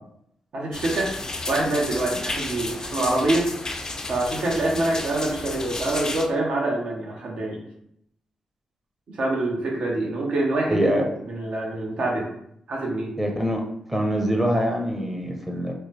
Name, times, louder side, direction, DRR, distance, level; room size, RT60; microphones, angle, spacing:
voice 1, 0.5-1.1 1.5-3.5 4.1-7.6 9.1-12.3 12.7-13.1, right 2 dB, 70° right, -2 dB, 0.8 m, -25 dB
sound 1, 0.7-6.3, left 2 dB, 30° left, 0.4 m, -32 dB
voice 2, 10.7-11.0 13.2-13.6 13.9-15.7, equal, 10° right, 1 dB, 0.7 m, -24 dB
3.1 x 2.1 x 3.1 m, 0.74 s
cardioid pair, 65°, 2 cm